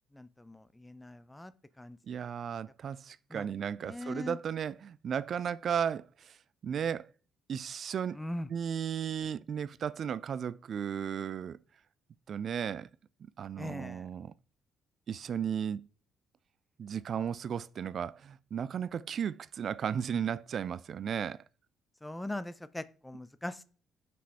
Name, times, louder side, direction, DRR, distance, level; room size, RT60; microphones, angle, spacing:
voice 1, 0.1-2.2 3.3-3.5 3.8-4.4 8.1-8.5 13.6-14.1 22.0-23.6, left 1 dB, 10° left, 0.8 m, -41 dB
voice 2, 2.1-6.4 6.6-7.1 7.5-8.2 8.5-11.6 12.3-12.9 13.4-14.3 15.1-15.9 16.8-21.4, right 8 dB, 50° right, 0.4 m, -35 dB
6.1 x 5.7 x 4.7 m
figure-of-eight pair, 45°, 0 cm